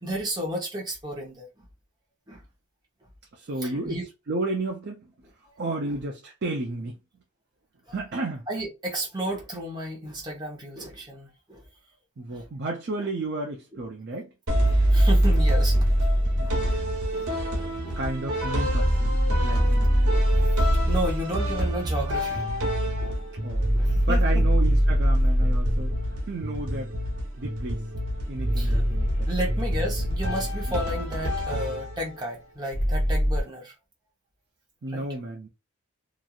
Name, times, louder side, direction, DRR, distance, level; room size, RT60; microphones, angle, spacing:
voice 1, 0.0-1.6 2.3-2.4 3.6-4.1 5.9-6.0 7.9-8.0 8.5-11.6 12.3-12.4 13.0-13.1 13.7-13.8 14.9-16.1 16.4-16.8 17.1-17.3 17.8-18.0 19.4-19.5 20.1-20.5 20.9-22.4 23.0-23.2 23.7-24.4 28.6-28.8 29.3-33.7 34.9-35.0, right 1 dB, 20° right, 0.9 m, -33 dB
voice 2, 3.3-5.1 5.4-7.0 7.9-8.5 12.2-14.3 16.4-17.1 18.0-19.1 19.4-19.9 23.3-26.0 26.3-26.9 27.4-27.9 28.3-29.1 30.7-30.8 34.8-35.5, right 2 dB, 50° right, 0.5 m, -33 dB
sound 1, 14.5-16.8 18.7-21.2 23.5-26.1 28.3-30.9 32.7-33.4, equal, 25° left, 0.7 m, -22 dB
sound 2, 14.5-32.3, equal, 80° right, 1.1 m, -30 dB
2.9 x 2.5 x 2.4 m
head